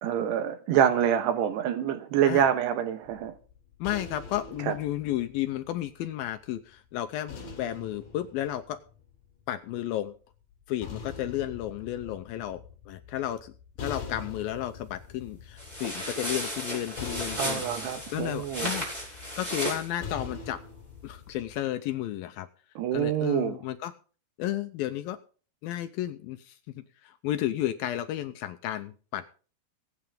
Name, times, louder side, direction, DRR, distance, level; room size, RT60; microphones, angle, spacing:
voice 1, 0.0-3.3 4.7-4.8 17.4-18.7 22.8-23.6, right 9 dB, 75° right, 3.3 m, -26 dB
sound 1, 3.0-6.3 7.3-9.5 10.5-21.6, left 5 dB, 55° left, 4.4 m, -44 dB
voice 2, 3.8-8.8 9.5-10.1 10.7-13.5 13.8-17.6 18.1-20.6 21.0-22.5 22.9-23.9 24.4-25.2 25.6-29.3, left 13 dB, 80° left, 2.1 m, -33 dB
sound 2, 15.6-19.9, equal, 10° right, 5.8 m, -34 dB
22.5 x 8.8 x 3.7 m
omnidirectional pair, 5.0 m